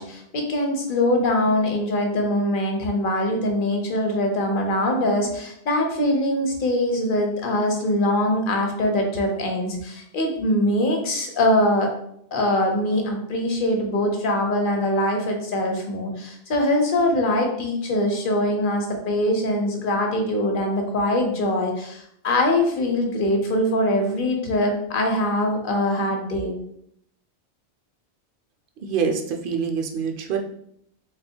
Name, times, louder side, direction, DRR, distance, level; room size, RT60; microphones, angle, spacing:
voice 1, 0.0-11.9 12.3-26.5, left 1 dB, 50° left, 3 dB, 0.9 m, -23 dB
voice 2, 28.8-30.4, right 6 dB, 60° right, 2 dB, 0.7 m, -25 dB
3.5 x 2.3 x 4.3 m, 0.72 s
omnidirectional pair, 1.2 m